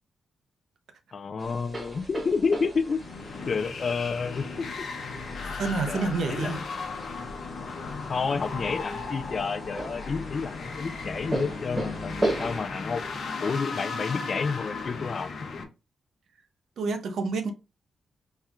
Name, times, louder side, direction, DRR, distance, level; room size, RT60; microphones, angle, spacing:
voice 1, 1.1-3.0 3.4-4.9 5.8-6.5 7.2-7.3 8.1-13.0 13.4-15.6, left 5 dB, 40° left, 0.3 m, -30 dB
sound 1, 1.4-12.6, right 1 dB, 20° right, 1.1 m, -37 dB
sound 2, 2.7-15.6, left 4 dB, 60° left, 0.8 m, -36 dB
voice 2, 5.6-6.6 16.8-17.5, right 4 dB, 70° right, 0.6 m, -28 dB
4.2 x 2.3 x 3.5 m
wide cardioid pair, 155°, 0 cm